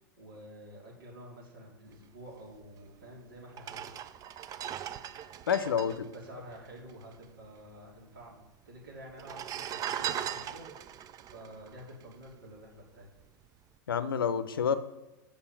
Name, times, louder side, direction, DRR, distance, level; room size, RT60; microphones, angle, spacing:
voice 1, 0.2-4.0 5.9-13.1, equal, 85° right, -4 dB, 3.0 m, -49 dB
sound 1, 2.8-2.9 3.5-7.2 7.4-7.5 7.7-8.4 9.1-12.6 13.0-13.3, right 10 dB, 30° right, 0.4 m, -39 dB
voice 2, 5.5-6.0 13.9-14.8, left 7 dB, 85° left, 12 dB, 0.6 m, -28 dB
7.0 x 5.4 x 5.7 m, 0.97 s
hypercardioid pair, 100°, 11 cm